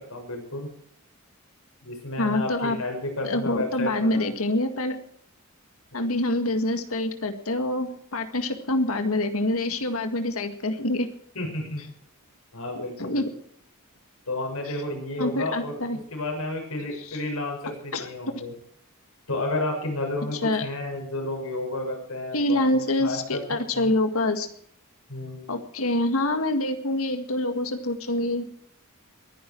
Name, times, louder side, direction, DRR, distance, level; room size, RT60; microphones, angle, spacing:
voice 1, 0.1-0.7 1.8-4.2 11.3-11.8 12.5-13.2 14.3-15.7 16.1-18.5 19.3-23.4 23.7-23.9 25.1-25.5, left 2 dB, 90° left, 1 dB, 6.7 m, -31 dB
voice 2, 2.2-2.8 3.2-5.0 5.9-11.1 12.8-13.3 15.2-16.0 17.0-17.2 17.9-18.1 20.4-20.7 22.3-24.5 25.5-28.4, left 1 dB, 75° left, 7 dB, 1.9 m, -26 dB
22.0 x 11.0 x 4.7 m, 0.63 s
head